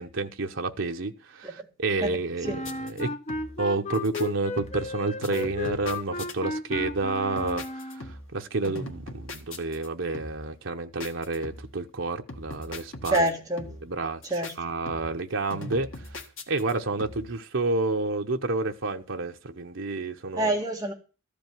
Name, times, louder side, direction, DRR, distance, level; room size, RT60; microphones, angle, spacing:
voice 1, 0.0-3.1 3.6-13.3 13.8-14.2 14.6-15.9 16.5-20.6, right 3 dB, 65° right, 0.9 m, -30 dB
Wind instrument woodwind instrument, 2.4-8.1, left 2 dB, 30° left, 0.7 m, -34 dB
sound 1, 2.6-3.0 3.3-3.7 3.9-4.3 4.6-5.0 5.2-6.3 6.7-7.1 7.4-8.4 8.6-9.9 10.1-10.5 11.0-11.8 12.3-13.3 13.6-14.0 14.2-14.5 14.9-15.3 15.5-16.7 17.0-17.4, left 2 dB, 70° left, 1.8 m, -41 dB
voice 2, 13.1-13.7 14.3-14.5 20.3-20.9, right 1 dB, 15° right, 1.6 m, -26 dB
14.0 x 5.2 x 9.2 m
head